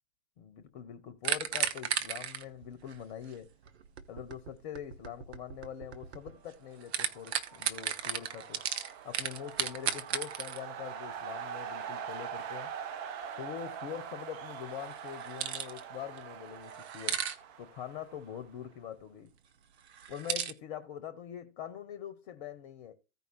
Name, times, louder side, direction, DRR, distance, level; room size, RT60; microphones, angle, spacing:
voice 1, 0.4-3.5 4.1-8.6 9.0-12.7 13.4-17.2 17.6-19.3 20.1-22.9, left 9 dB, 35° left, 1.0 m, -43 dB
sound 1, 1.2-6.5 6.8-10.6 14.9-15.8 16.2-16.3 16.7-17.4 19.9-20.5, right 8 dB, 50° right, 1.1 m, -35 dB
sound 2, 6.7-18.7, right 8 dB, 25° right, 1.0 m, -43 dB
15.5 x 5.3 x 3.1 m
figure-of-eight pair, 105°, 41 cm